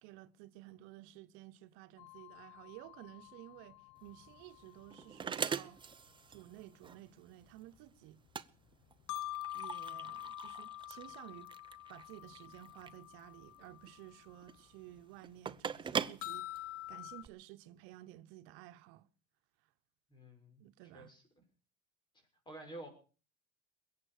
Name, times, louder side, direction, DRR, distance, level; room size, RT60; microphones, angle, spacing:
voice 1, 0.0-5.8 6.3-8.2 9.5-11.5 11.9-19.1 20.6-21.2, right 15 dB, 80° right, 1.1 m, -54 dB
sound 1, 2.0-5.7 6.6-6.7 8.9-14.5 14.7-14.8 15.3-15.4 16.2-17.2, left 15 dB, 85° left, 0.7 m, -47 dB
sound 2, 4.0-17.3, right 6 dB, 25° right, 0.8 m, -43 dB
voice 2, 20.1-20.6 20.9-21.2 22.5-22.9, right 1 dB, 20° left, 6.4 m, -49 dB
22.0 x 8.9 x 6.6 m
cardioid pair, 120°, 20 cm